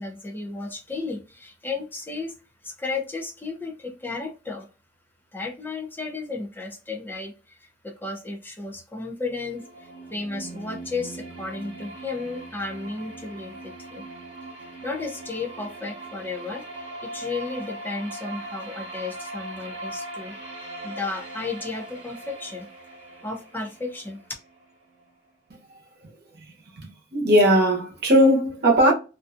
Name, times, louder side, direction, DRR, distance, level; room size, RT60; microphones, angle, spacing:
voice 1, 0.0-2.3 2.6-4.7 5.3-14.0 14.8-20.3 20.8-22.7 23.2-24.2, left 3 dB, 10° left, 0.5 m, -33 dB
sound 1, 9.1-25.1, right 2 dB, 35° right, 1.3 m, -40 dB
voice 2, 26.8-28.9, equal, 60° right, 0.8 m, -18 dB
2.5 x 2.3 x 2.4 m
head